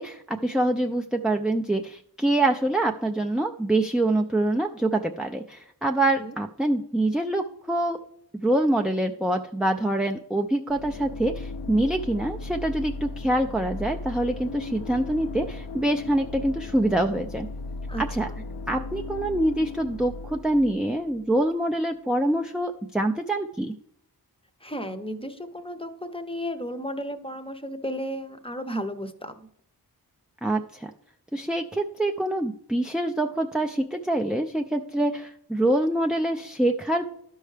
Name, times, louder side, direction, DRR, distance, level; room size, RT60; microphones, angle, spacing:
voice 1, 0.0-8.0 8.4-17.5 18.0-18.3 18.7-23.7 30.4-30.9 31.3-37.1, right 1 dB, ahead, 2 dB, 0.4 m, -25 dB
sound 1, 10.7-21.5, left 3 dB, 90° left, 0.6 m, -37 dB
voice 2, 17.9-18.4 24.6-29.5, equal, 15° left, 8 dB, 0.7 m, -34 dB
12.0 x 5.5 x 3.3 m, 0.70 s
wide cardioid pair, 65°, 39 cm